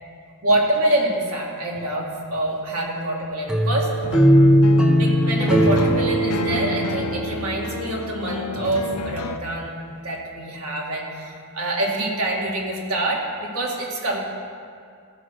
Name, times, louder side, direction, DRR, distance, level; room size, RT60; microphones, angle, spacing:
voice 1, 0.4-4.5 4.9-9.7 10.0-14.2, right 1 dB, 70° right, -2 dB, 2.0 m, -26 dB
sound 1, 3.5-8.4, equal, 5° right, 0.8 m, -19 dB
sound 2, 4.0-9.4, left 3 dB, 85° left, 0.5 m, -31 dB
15.0 x 5.2 x 6.3 m, 2.3 s
head